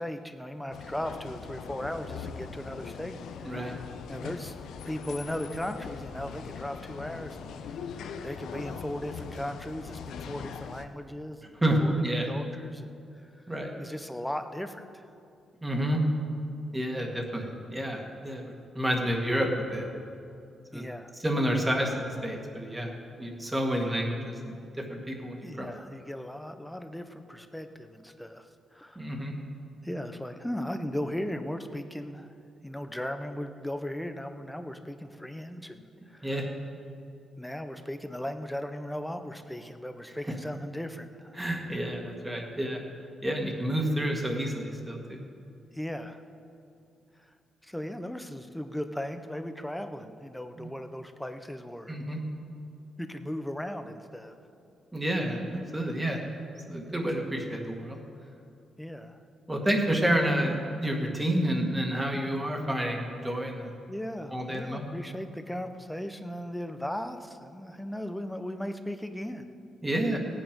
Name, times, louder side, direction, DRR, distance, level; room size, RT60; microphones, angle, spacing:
voice 1, 0.0-3.8 4.1-4.6 4.8-7.5 7.9-11.5 11.8-11.9 12.2-12.9 13.8-15.0 20.7-21.1 25.4-29.2 29.8-32.3 32.6-36.4 37.4-41.4 45.7-46.2 47.6-51.9 53.0-54.3 58.8-59.2 63.9-69.4, left 1 dB, 5° left, 8 dB, 0.7 m, -37 dB
sound 1, 0.7-10.8, left 6 dB, 85° left, 0.7 m, -41 dB
voice 2, 11.5-12.3 13.5-13.7 15.6-16.0 16.7-19.9 20.7-20.8 21.2-22.9 23.2-25.7 29.0-29.3 36.0-36.5 41.4-42.8 43.2-45.2 50.6-50.7 51.9-52.2 54.9-56.2 56.7-58.0 59.5-63.7 64.3-64.9 69.8-70.2, right 1 dB, 10° right, 1 dB, 1.8 m, -29 dB
17.0 x 8.8 x 5.3 m, 2.6 s
cardioid pair, 120°, 0 cm